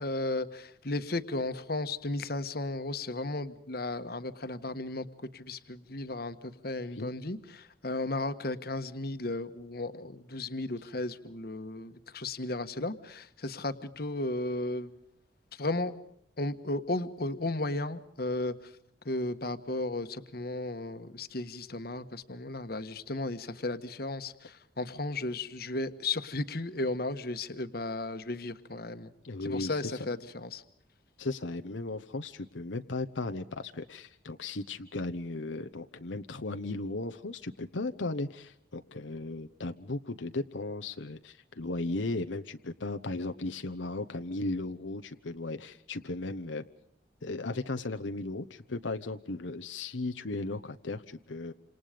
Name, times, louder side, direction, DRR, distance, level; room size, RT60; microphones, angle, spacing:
voice 1, 0.0-5.1 5.3-14.9 15.6-15.9 16.4-18.5 19.0-29.1 29.4-30.6, left 2 dB, 55° left, 10 dB, 1.4 m, -34 dB
voice 2, 29.2-30.0 31.2-46.6 47.2-51.5, left 2 dB, 90° left, 8 dB, 1.1 m, -36 dB
28.5 x 27.0 x 5.2 m, 0.72 s
head